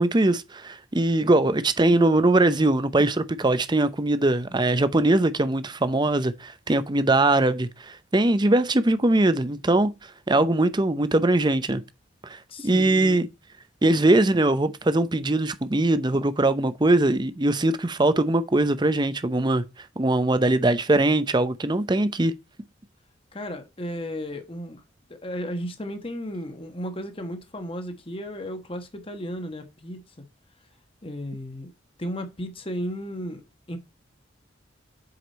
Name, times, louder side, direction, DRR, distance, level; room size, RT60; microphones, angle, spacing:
voice 1, 0.0-9.9 10.3-11.8 12.3-13.3 13.8-19.6 20.0-22.3, right 2 dB, 25° right, 0.7 m, -21 dB
voice 2, 12.5-13.2 23.3-24.8 25.1-30.0 31.0-31.7 32.0-33.8, equal, 30° left, 1.2 m, -34 dB
7.9 x 5.0 x 4.1 m
head